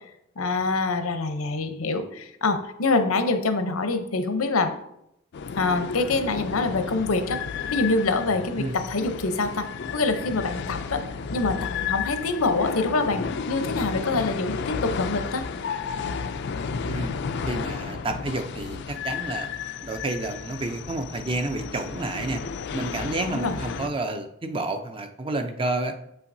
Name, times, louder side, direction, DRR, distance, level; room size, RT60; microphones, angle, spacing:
voice 1, 0.4-4.7 5.6-7.4 7.7-9.7 9.9-11.0 11.3-15.4 23.2-23.5, left 3 dB, 85° left, 8 dB, 0.7 m, -25 dB
sound 1, 5.3-23.9, left 6 dB, 55° left, 0.3 m, -32 dB
voice 2, 17.5-19.5 19.8-22.4 22.7-26.0, right 2 dB, 25° right, 7 dB, 0.4 m, -30 dB
7.7 x 5.7 x 2.6 m, 0.79 s
head